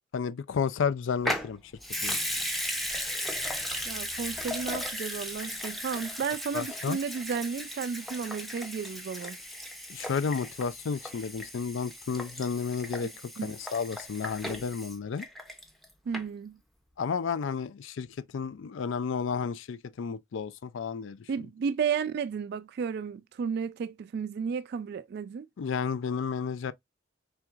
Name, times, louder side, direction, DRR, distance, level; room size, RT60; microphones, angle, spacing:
voice 1, 0.1-1.6 2.0-2.2 6.5-7.0 9.9-15.3 17.0-18.1 18.3-21.5 25.6-26.7, left 6 dB, 65° left, 0.4 m, -32 dB
Water tap faucet / Sink (filling or washing) / Liquid, 1.2-15.8 16.1-16.2, equal, ahead, 0.6 m, -36 dB
voice 2, 3.9-9.4 13.4-13.5 16.1-16.6 21.3-25.5, right 6 dB, 55° right, 0.3 m, -33 dB
4.5 x 3.5 x 2.4 m
head